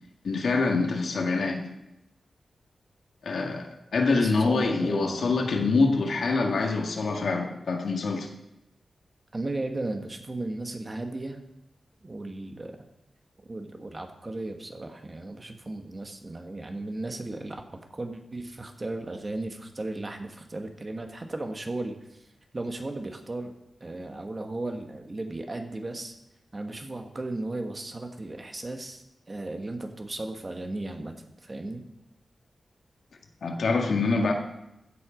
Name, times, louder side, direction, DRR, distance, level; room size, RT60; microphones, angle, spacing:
voice 1, 0.2-1.6 3.2-3.7 3.9-8.3 33.4-34.3, left 3 dB, 80° left, 2 dB, 1.8 m, -25 dB
voice 2, 4.1-5.4 9.3-11.4 12.0-12.8 13.4-22.3 22.5-23.5 23.8-26.1 26.5-31.8, right 2 dB, 30° right, 5 dB, 1.5 m, -35 dB
15.0 x 7.8 x 5.1 m, 0.85 s
wide cardioid pair, 100°, 0 cm